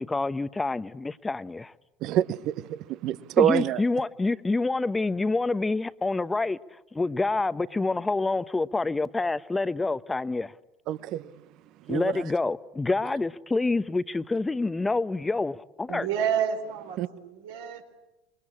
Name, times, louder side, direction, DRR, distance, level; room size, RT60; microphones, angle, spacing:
voice 1, 0.0-1.7 3.4-6.6 6.9-10.5 11.9-16.1, left 3 dB, 15° left, 1.0 m, -27 dB
voice 2, 2.0-3.8 10.9-11.3 11.9-12.2 17.0-17.1, right 11 dB, 55° right, 1.0 m, -26 dB
voice 3, 15.9-17.8, right 8 dB, 70° right, 4.3 m, -29 dB
26.5 x 23.0 x 8.6 m
hypercardioid pair, 70°, 0 cm